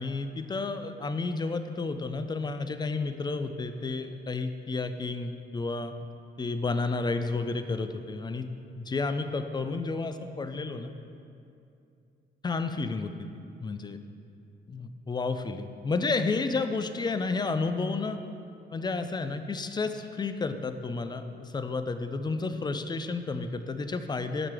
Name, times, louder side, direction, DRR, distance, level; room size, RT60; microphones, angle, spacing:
voice 1, 0.0-5.9 6.4-8.5 8.8-10.9 12.4-13.3 13.6-14.0 14.7-18.2 18.7-24.5, left 3 dB, 20° left, 9 dB, 0.3 m, -31 dB
5.9 x 4.8 x 4.6 m, 2.5 s
cardioid pair, 90°, 20 cm